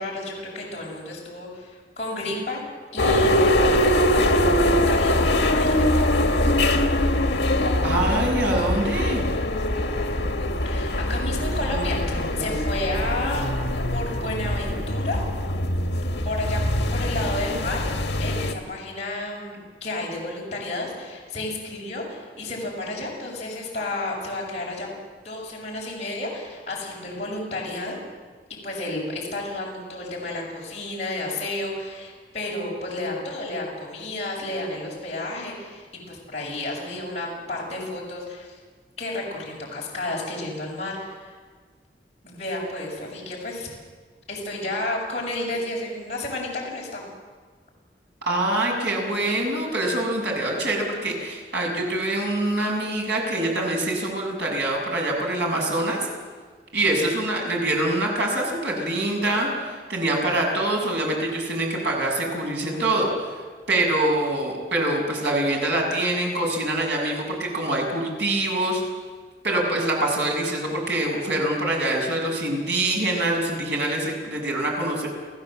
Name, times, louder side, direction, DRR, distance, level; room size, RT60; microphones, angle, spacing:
voice 1, 0.0-2.6 2.9-6.0 10.6-13.5 13.9-15.2 16.2-17.8 18.2-24.9 25.2-28.0 28.6-38.6 39.0-41.4 42.2-43.7 44.3-47.0, left 2 dB, 40° left, -4 dB, 6.6 m, -31 dB
sound 1, 3.0-18.5, left 1 dB, 75° left, 1.9 m, -23 dB
voice 2, 7.8-9.2 48.3-56.1 56.7-63.1 63.7-68.8 69.4-75.1, right 1 dB, 90° right, -1 dB, 7.2 m, -25 dB
29.5 x 16.0 x 7.7 m, 1.5 s
head